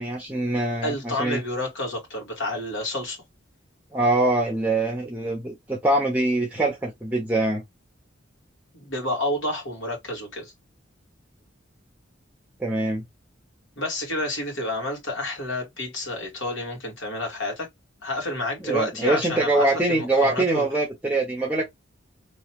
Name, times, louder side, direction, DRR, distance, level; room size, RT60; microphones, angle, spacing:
voice 1, 0.0-1.4 3.9-7.6 12.6-13.0 18.6-21.6, right 2 dB, 10° right, 0.9 m, -24 dB
voice 2, 0.8-3.2 8.7-10.5 13.8-17.7 18.0-20.7, left 1 dB, 75° left, 2.3 m, -29 dB
4.0 x 3.1 x 3.0 m
head